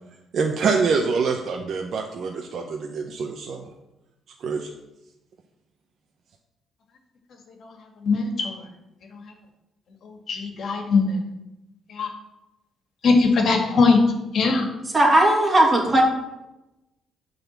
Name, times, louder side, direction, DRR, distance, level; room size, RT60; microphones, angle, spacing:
voice 1, 0.3-3.7 4.4-4.7, right 5 dB, 60° right, 2 dB, 0.8 m, -25 dB
voice 2, 8.1-8.5 10.3-11.1 12.0-12.1 13.0-14.0 14.3-14.7, left 4 dB, 60° left, 3 dB, 1.8 m, -19 dB
voice 3, 14.8-16.0, right 1 dB, 25° right, -1 dB, 2.6 m, -17 dB
8.9 x 4.0 x 7.2 m, 0.96 s
cardioid pair, 90°, 0 cm